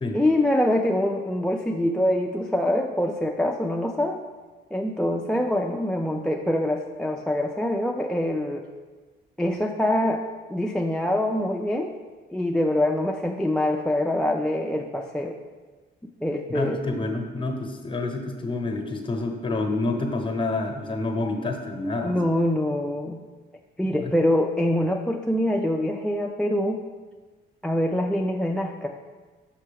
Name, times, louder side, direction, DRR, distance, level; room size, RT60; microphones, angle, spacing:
voice 1, 0.1-4.2 4.7-8.6 9.4-10.2 10.5-11.9 12.3-15.4 16.2-16.8 22.0-23.2 23.8-26.8 27.6-28.9, left 1 dB, 5° left, 3 dB, 0.3 m, -24 dB
voice 2, 16.5-22.2 24.0-24.1, left 2 dB, 25° left, 4 dB, 0.9 m, -28 dB
5.7 x 5.3 x 3.4 m, 1.4 s
cardioid pair, 90°, 20 cm